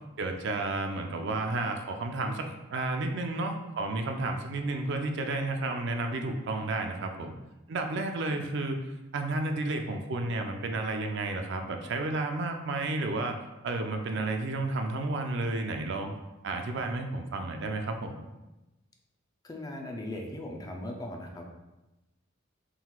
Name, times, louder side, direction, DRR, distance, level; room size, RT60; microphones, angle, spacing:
voice 1, 0.2-7.3 7.7-8.9 9.1-13.4 13.6-16.1 16.4-18.2, right 2 dB, 60° right, 4 dB, 0.4 m, -32 dB
voice 2, 19.4-21.5, left 1 dB, 20° left, 1 dB, 0.5 m, -38 dB
4.4 x 3.8 x 2.4 m, 1.0 s
head